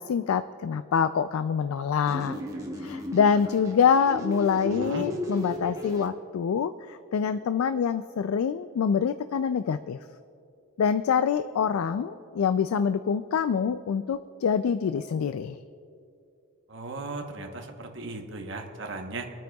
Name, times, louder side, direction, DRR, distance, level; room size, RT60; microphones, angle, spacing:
voice 1, 0.0-2.4 2.8-10.0 10.8-15.6, left 6 dB, 90° left, 12 dB, 0.3 m, -25 dB
sound 1, 2.1-6.1, left 1 dB, 15° right, 1.0 m, -35 dB
voice 2, 4.6-5.1 16.7-19.3, right 3 dB, 60° right, 3 dB, 1.0 m, -36 dB
26.5 x 9.1 x 2.3 m, 2.5 s
head